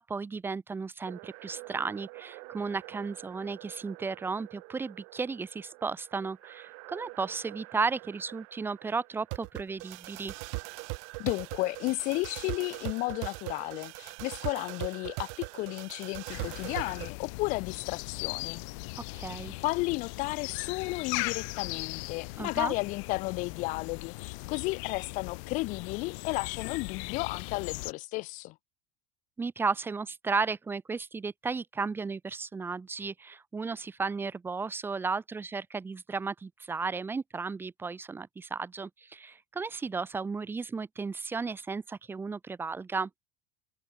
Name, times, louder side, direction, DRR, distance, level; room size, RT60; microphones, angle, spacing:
voice 1, 0.0-10.3 19.0-19.5 22.4-22.7 29.4-43.1, right 4 dB, 15° right, 3.4 m, -34 dB
sound 1, 1.1-17.1, right 40 dB or more, 65° right, 4.6 m, -42 dB
voice 2, 11.2-18.6 19.6-28.5, left 22 dB, 50° left, 3.7 m, -33 dB
sound 2, 16.3-27.9, left 30 dB, 70° left, 1.7 m, -39 dB
cardioid pair, 165°, 16 cm